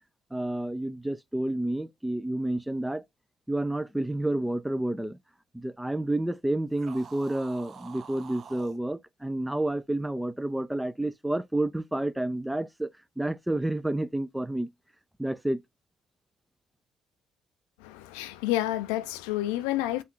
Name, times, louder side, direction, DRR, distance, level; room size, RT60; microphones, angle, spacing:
voice 1, 0.3-3.0 3.5-5.2 5.5-12.9 13.2-14.7 15.2-15.6, right 1 dB, 5° right, 0.5 m, -30 dB
sound 1, 6.7-8.8, right 6 dB, 50° right, 0.6 m, -47 dB
voice 2, 17.8-20.0, left 15 dB, 85° left, 0.4 m, -29 dB
5.6 x 2.5 x 3.6 m
supercardioid pair, 60°, 0 cm